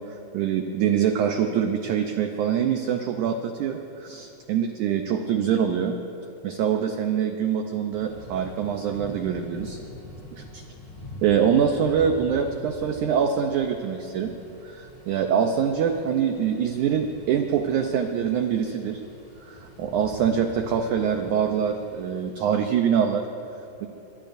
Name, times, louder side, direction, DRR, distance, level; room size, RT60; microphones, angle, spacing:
voice 1, 0.0-6.0 6.4-9.8 11.2-14.3 14.6-19.0 19.4-23.3, right 8 dB, 80° right, 5 dB, 1.8 m, -24 dB
Thunder / Rain, 7.9-22.8, equal, 10° left, 4.2 m, -44 dB
24.0 x 22.5 x 2.6 m, 2.9 s
omnidirectional pair, 4.3 m